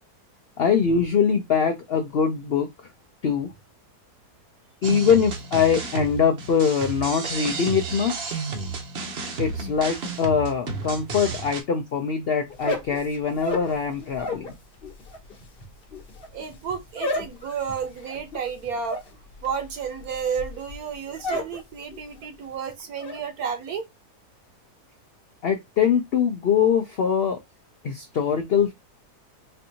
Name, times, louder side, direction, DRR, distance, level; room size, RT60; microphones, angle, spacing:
voice 1, 0.6-2.7 3.2-3.5 4.8-8.4 9.4-14.4 25.4-27.4 27.8-28.7, left 7 dB, 70° left, 0.5 m, -23 dB
sound 1, 4.8-11.6, right 4 dB, 50° right, 0.8 m, -32 dB
sound 2, 12.5-14.5 14.8-21.6 21.9-22.4 22.7-23.2, left 1 dB, 40° left, 1.1 m, -33 dB
voice 2, 16.3-19.0 19.4-23.9, right 6 dB, 70° right, 1.2 m, -31 dB
4.4 x 2.6 x 2.7 m
omnidirectional pair, 1.7 m